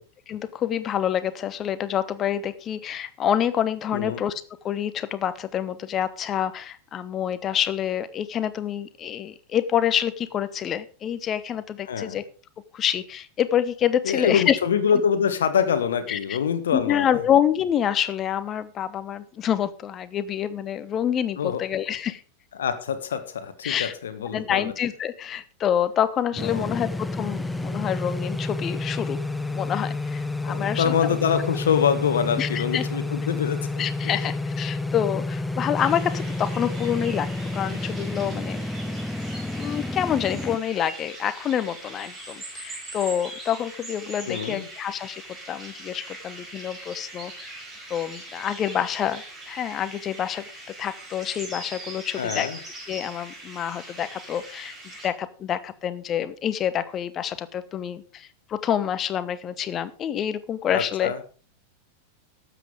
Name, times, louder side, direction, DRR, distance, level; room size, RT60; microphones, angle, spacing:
voice 1, 0.3-12.2 12.7-14.6 14.9-15.0 16.1-16.4 16.7-22.2 23.6-23.9 24.3-29.2 29.5-30.9 32.4-32.9 33.8-39.0 39.5-45.2 45.5-47.6 47.9-50.5 50.8-52.5 52.9-61.2, left 9 dB, 30° left, 14 dB, 1.0 m, -27 dB
voice 2, 11.9-12.2 14.0-17.0 21.4-21.6 22.6-24.7 26.4-26.8 30.5-34.1 44.3-44.7 52.2-52.6 60.7-61.2, left 7 dB, 65° left, 9 dB, 1.4 m, -25 dB
sound 1, 26.4-40.6, left 2 dB, 5° left, 0.8 m, -30 dB
sound 2, 35.7-55.1, right 2 dB, 20° right, 4.8 m, -41 dB
12.5 x 8.1 x 4.9 m, 0.38 s
figure-of-eight pair, 90°, 0 cm